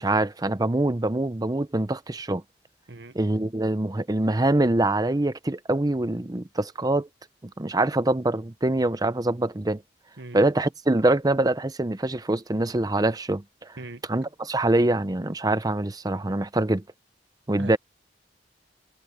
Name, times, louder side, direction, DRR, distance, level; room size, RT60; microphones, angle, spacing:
voice 1, 0.0-2.4 3.1-7.1 7.4-9.8 10.3-13.8 14.1-16.8 17.5-17.8, right 2 dB, 20° right, 0.7 m, -24 dB
voice 2, 2.9-3.1 10.2-10.4 13.8-14.0 17.6-17.8, right 2 dB, 70° right, 1.2 m, -39 dB
head